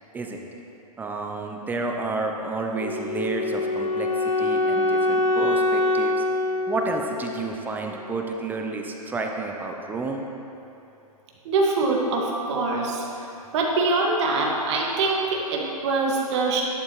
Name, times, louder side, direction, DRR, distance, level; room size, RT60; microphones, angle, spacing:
voice 1, 1.0-6.2 6.7-10.2, right 3 dB, 10° right, 2 dB, 0.6 m, -30 dB
Wind instrument woodwind instrument, 2.8-7.8, left 2 dB, 55° left, 0.9 m, -24 dB
voice 2, 11.5-13.1 13.5-16.6, right 3 dB, 45° right, -1 dB, 2.0 m, -24 dB
12.0 x 11.0 x 3.2 m, 2.8 s
hypercardioid pair, 130°, 20 cm